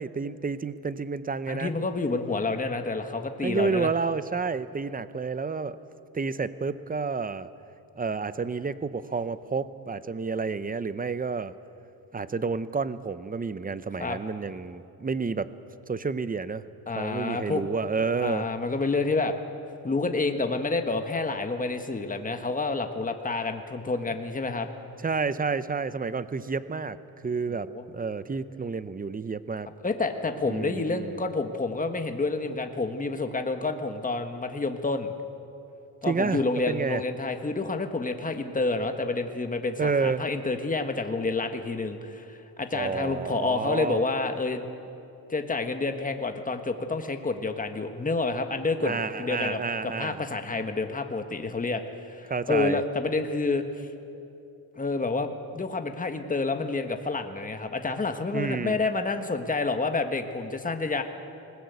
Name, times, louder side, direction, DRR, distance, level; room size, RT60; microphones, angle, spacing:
voice 1, 0.0-1.7 3.4-5.8 6.1-7.5 8.0-11.5 12.1-15.5 15.9-16.6 17.0-18.5 25.0-27.0 27.2-29.7 30.4-31.2 36.1-36.4 36.7-37.0 39.8-40.2 42.7-44.0 48.8-50.2 52.3-52.8 58.3-58.8, right 4 dB, 20° right, 14 dB, 0.7 m, -30 dB
voice 2, 1.5-3.9 14.0-14.2 16.9-17.6 18.2-19.4 19.8-24.7 27.5-27.8 29.8-35.1 36.0-44.6 45.3-51.8 52.1-53.6 54.8-61.0, left 3 dB, 20° left, 6 dB, 1.5 m, -29 dB
20.5 x 20.0 x 8.2 m, 2.8 s
cardioid pair, 115°, 41 cm